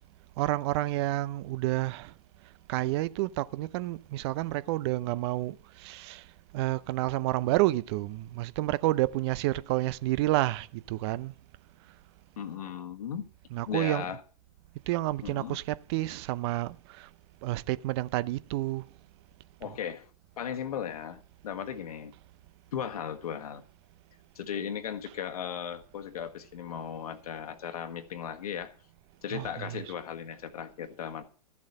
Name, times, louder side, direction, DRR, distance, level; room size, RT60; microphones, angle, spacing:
voice 1, 0.4-2.1 2.7-6.2 6.5-11.3 13.5-14.1 14.9-17.1 17.4-18.9 19.6-19.8 29.3-29.9, right 17 dB, 45° right, 0.6 m, -30 dB
voice 2, 12.4-13.2 13.7-14.2 15.2-15.6 19.6-20.1 20.4-22.1 22.7-23.6 24.3-28.7 29.2-31.3, left 8 dB, 70° left, 1.6 m, -36 dB
14.0 x 7.2 x 6.6 m
hypercardioid pair, 110°, 20 cm